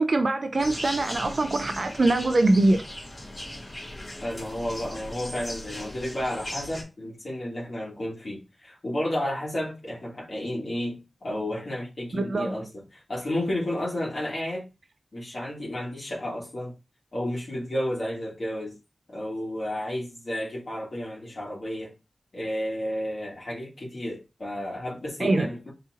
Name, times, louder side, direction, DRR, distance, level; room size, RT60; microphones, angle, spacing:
voice 1, 0.0-2.8 12.1-12.6 25.2-25.5, right 2 dB, 50° right, 0.4 m, -23 dB
sound 1, 0.6-6.8, left 1 dB, 30° left, 2.0 m, -38 dB
voice 2, 4.2-11.0 11.2-14.6 15.1-16.7 17.1-18.7 19.1-21.9 22.3-25.7, left 1 dB, 50° left, 1.8 m, -32 dB
5.4 x 3.0 x 2.5 m
wide cardioid pair, 100°, 0 cm